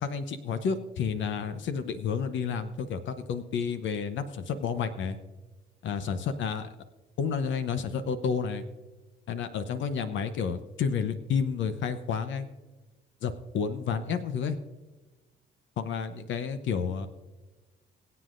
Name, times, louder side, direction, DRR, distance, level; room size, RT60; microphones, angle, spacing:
voice 1, 0.0-5.2 5.8-6.7 7.2-8.6 9.3-12.5 13.2-14.6 15.8-17.1, left 6 dB, 70° left, 10 dB, 0.8 m, -30 dB
22.5 x 7.8 x 2.5 m, 1.2 s
cardioid pair, 90°, 20 cm